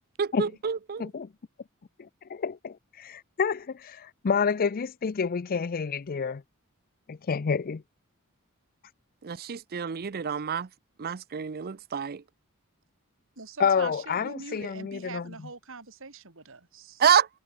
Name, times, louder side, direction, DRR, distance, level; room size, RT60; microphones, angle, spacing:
voice 1, 0.2-1.1 9.2-10.7 11.0-12.2 17.0-17.3, right 8 dB, 45° right, 0.5 m, -27 dB
voice 2, 2.0-6.4 7.1-7.8 13.6-15.3, left 6 dB, 40° left, 0.4 m, -29 dB
voice 3, 13.4-17.0, right 4 dB, 60° right, 2.5 m, -43 dB
head